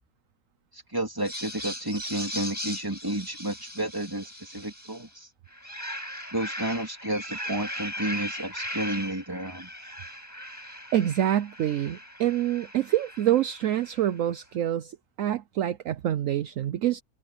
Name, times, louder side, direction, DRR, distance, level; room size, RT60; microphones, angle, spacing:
voice 1, 0.7-5.3 6.3-9.7, right 1 dB, 15° right, 3.4 m, -31 dB
sound 1, 1.2-5.1 5.5-14.2, equal, 10° left, 5.5 m, -38 dB
voice 2, 10.9-17.0, right 12 dB, 65° right, 1.0 m, -26 dB
omnidirectional pair, 1.5 m